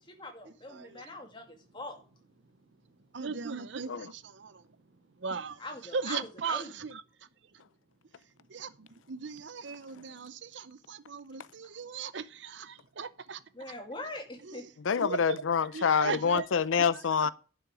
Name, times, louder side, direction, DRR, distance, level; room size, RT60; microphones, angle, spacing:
voice 1, 0.0-2.0 5.6-6.9 11.6-11.7 13.5-14.6, left 2 dB, 25° left, 2.3 m, -43 dB
voice 2, 3.1-3.9 5.2-5.5 5.9-6.6 8.6-8.7 9.1-10.3 11.1-12.2 13.0-13.4 15.0-15.2 15.7-16.4, right 5 dB, 70° right, 0.7 m, -36 dB
voice 3, 14.8-17.3, left 6 dB, 90° left, 0.5 m, -27 dB
11.0 x 5.8 x 4.9 m
head